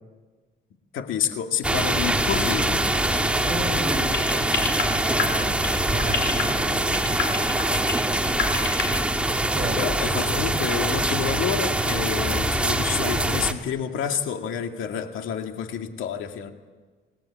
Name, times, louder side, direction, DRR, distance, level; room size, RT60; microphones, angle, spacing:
voice 1, 0.9-2.9 9.8-16.5, left 8 dB, 80° left, 5 dB, 2.2 m, -29 dB
sound 1, 1.6-13.5, right 1 dB, 5° right, 1.7 m, -24 dB
voice 2, 3.4-5.6 5.9-7.2 7.6-7.9 9.5-9.8 10.1-10.3 12.9-13.4, right 1 dB, 30° right, 2 dB, 6.8 m, -35 dB
sound 2, 4.1-9.1, left 6 dB, 65° left, 5.4 m, -26 dB
28.0 x 20.0 x 8.7 m, 1.4 s
cardioid pair, 130°, 20 cm